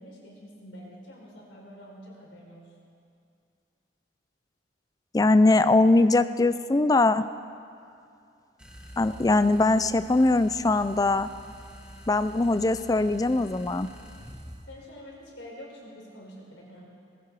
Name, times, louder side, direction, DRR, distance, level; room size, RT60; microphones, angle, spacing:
voice 1, 0.0-2.7 14.7-16.9, equal, 85° left, -3 dB, 4.5 m, -46 dB
voice 2, 5.1-7.2 9.0-11.3 12.1-13.9, left 2 dB, 20° left, 13 dB, 0.4 m, -21 dB
sound 1, 8.6-14.6, equal, 5° right, 1.3 m, -46 dB
18.5 x 16.0 x 4.8 m, 2.4 s
head